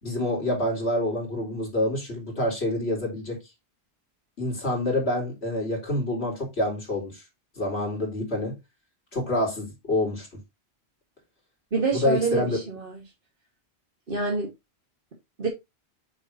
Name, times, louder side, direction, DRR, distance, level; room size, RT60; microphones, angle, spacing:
voice 1, 0.0-3.4 4.4-7.2 7.6-8.6 9.1-10.3 11.9-12.6, left 1 dB, 75° left, 4.2 m, -27 dB
voice 2, 11.7-13.0 14.1-14.5 15.4-15.5, right 4 dB, 55° right, 1.8 m, -26 dB
8.4 x 6.9 x 2.8 m
omnidirectional pair, 1.1 m